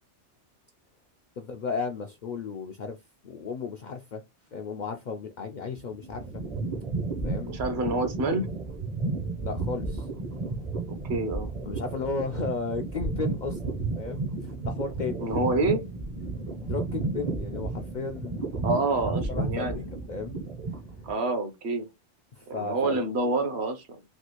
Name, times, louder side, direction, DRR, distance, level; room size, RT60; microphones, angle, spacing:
voice 1, 1.4-3.0 3.2-4.2 4.5-6.4 7.2-7.5 9.4-10.1 11.6-15.5 16.6-18.8 19.3-20.4 22.3-23.0, left 4 dB, 60° left, 0.5 m, -34 dB
sound 1, 5.7-21.2, right 3 dB, 40° right, 0.6 m, -33 dB
voice 2, 7.5-8.5 11.1-11.5 15.2-15.8 18.6-19.8 21.0-21.9 22.5-23.9, right 2 dB, 65° right, 1.1 m, -27 dB
3.4 x 2.4 x 2.9 m
omnidirectional pair, 1.2 m